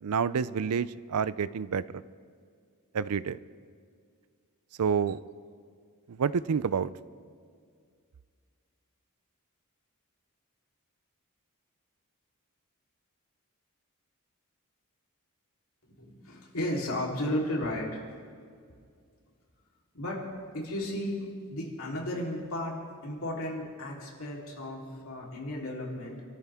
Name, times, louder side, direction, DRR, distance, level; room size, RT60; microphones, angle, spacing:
voice 1, 0.0-1.8 2.9-3.4 4.8-5.2 6.1-6.9, right 6 dB, 80° right, 17 dB, 0.5 m, -28 dB
voice 2, 16.0-18.0 19.9-20.3 20.5-22.8 23.0-26.2, left 1 dB, 65° left, -2 dB, 3.6 m, -34 dB
27.5 x 13.5 x 3.6 m, 2.1 s
head